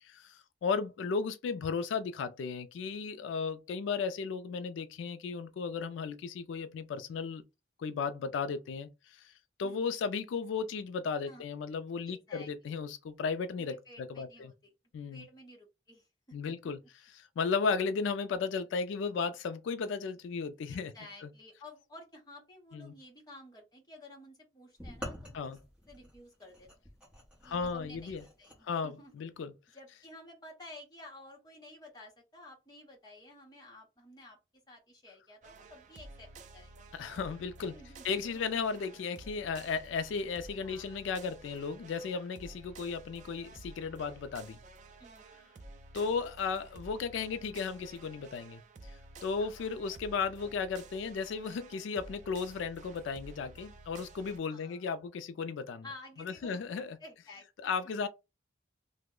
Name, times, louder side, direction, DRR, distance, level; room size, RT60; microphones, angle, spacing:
voice 1, 0.1-7.4 7.8-9.3 9.6-14.5 14.9-15.2 16.3-16.8 17.2-20.9 21.2-21.3 22.7-22.9 25.3-25.6 27.4-28.2 28.6-29.5 36.9-37.7 38.0-44.6 45.9-49.0 49.2-55.8 56.2-57.0 57.6-58.1, left 5 dB, 80° left, 0.3 m, -35 dB
voice 2, 9.6-9.9 11.3-11.4 12.1-12.7 13.6-14.7 15.1-16.1 16.4-16.9 20.7-25.6 25.9-26.7 27.4-29.1 29.7-34.4 34.7-36.9 37.7-38.4 40.6-40.9 45.0-45.5 49.4-49.6 54.5-54.9 55.8-56.6 57.0-57.7, left 1 dB, 20° left, 0.9 m, -53 dB
sound 1, 24.8-28.6, equal, 5° right, 0.9 m, -47 dB
sound 2, 35.4-54.4, right 2 dB, 40° right, 0.3 m, -52 dB
2.9 x 2.0 x 3.6 m
head